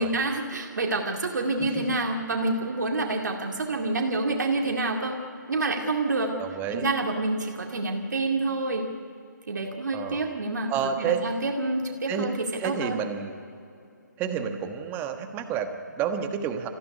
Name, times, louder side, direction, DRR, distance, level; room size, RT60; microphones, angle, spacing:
voice 1, 0.0-5.2 5.5-6.4 6.7-8.9 9.5-10.7 11.0-13.0, right 2 dB, 65° right, 1 dB, 2.2 m, -27 dB
voice 2, 6.4-6.9 9.9-10.2 10.7-11.3 12.1-12.3 12.6-13.3 14.2-16.7, right 7 dB, 20° right, 6 dB, 1.3 m, -30 dB
25.0 x 15.5 x 9.6 m, 2.6 s
figure-of-eight pair, 140°, 10 cm